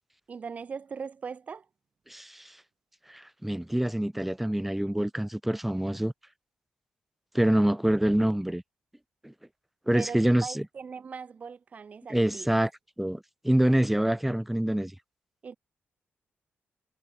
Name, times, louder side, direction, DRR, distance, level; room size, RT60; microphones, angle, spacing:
voice 1, 0.3-1.7 9.9-12.5 15.4-15.6, right 5 dB, 35° right, 4.0 m, -40 dB
voice 2, 2.1-2.5 3.1-6.1 7.3-8.6 9.2-9.3 9.9-10.6 12.1-12.7 13.0-14.9, right 1 dB, 5° right, 2.1 m, -26 dB
wide cardioid pair, 180°, 4 cm